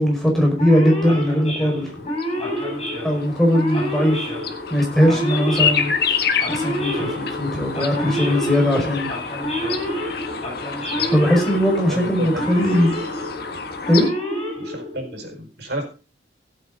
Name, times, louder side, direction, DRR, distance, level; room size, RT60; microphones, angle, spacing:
voice 1, 0.0-1.9 3.0-4.3 4.7-9.1 10.6-12.9 13.9-14.1, equal, ahead, 0 dB, 5.0 m, -20 dB
Male speech man speaking / Siren, 0.6-15.3, equal, 35° left, 7.0 m, -28 dB
sound 1, 1.8-14.1, left 6 dB, 60° left, 1.7 m, -28 dB
voice 2, 11.9-13.1 14.6-15.8, right 1 dB, 65° right, 2 dB, 5.0 m, -32 dB
16.5 x 8.6 x 3.8 m, 0.34 s
head